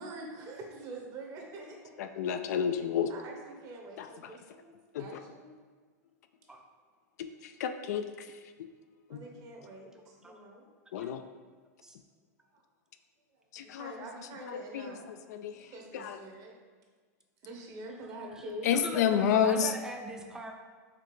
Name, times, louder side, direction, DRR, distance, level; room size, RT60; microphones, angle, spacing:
voice 1, 0.0-1.8 3.1-4.7 5.0-5.5 9.1-10.7 12.5-12.6 13.6-15.1 15.7-16.6 17.4-18.7, right 2 dB, 40° right, 1 dB, 1.0 m, -45 dB
voice 2, 2.0-3.1 4.0-4.1 4.9-5.2 7.4-8.3 9.1-9.3 10.9-11.2 13.5-13.9 14.4-15.0 15.3-15.7 15.9-16.2 18.6-19.7, left 8 dB, 70° left, 8 dB, 0.4 m, -30 dB
voice 3, 18.3-20.5, right 1 dB, 5° right, 2 dB, 0.5 m, -40 dB
4.9 x 3.3 x 3.1 m, 1.5 s
hypercardioid pair, 110°, 9 cm